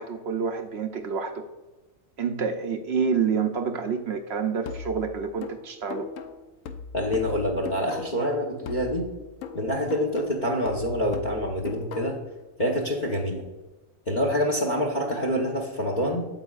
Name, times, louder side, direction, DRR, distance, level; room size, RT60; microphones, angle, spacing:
voice 1, 0.0-1.5 2.2-6.1, right 6 dB, 60° right, 6 dB, 0.8 m, -28 dB
sound 1, 4.7-8.3 8.7-12.3, left 6 dB, 75° left, 1.0 m, -39 dB
voice 2, 6.9-9.1 9.5-12.2 12.6-13.4 14.1-16.3, equal, 40° left, 2 dB, 0.9 m, -26 dB
9.0 x 7.3 x 2.4 m, 1.1 s
omnidirectional pair, 1.4 m